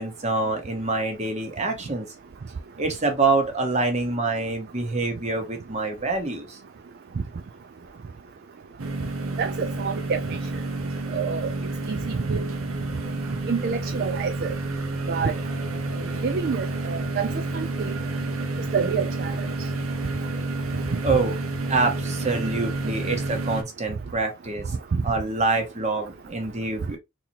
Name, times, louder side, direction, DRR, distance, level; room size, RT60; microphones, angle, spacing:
voice 1, 0.0-2.1 2.8-6.6 21.0-21.3 21.7-24.7 25.0-27.0, right 3 dB, 35° right, 1.2 m, -26 dB
sound 1, 8.8-23.6, right 2 dB, 85° right, 0.9 m, -29 dB
voice 2, 9.4-10.4 11.1-11.5 11.9-12.5 13.5-14.5 15.1-15.3 16.2-17.9 18.7-19.3 20.9-21.0, right 5 dB, 50° right, 0.4 m, -28 dB
4.0 x 2.9 x 2.9 m
head